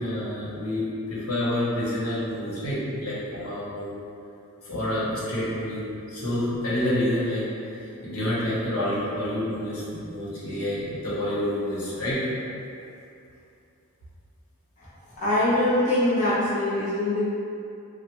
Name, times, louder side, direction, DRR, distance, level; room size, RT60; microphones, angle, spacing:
voice 1, 0.0-4.0 4.6-5.8 6.1-7.4 8.0-12.2, left 1 dB, 80° left, -9 dB, 1.0 m, -28 dB
voice 2, 15.2-17.3, left 1 dB, 35° left, -12 dB, 0.8 m, -23 dB
3.4 x 2.1 x 3.0 m, 2.6 s
head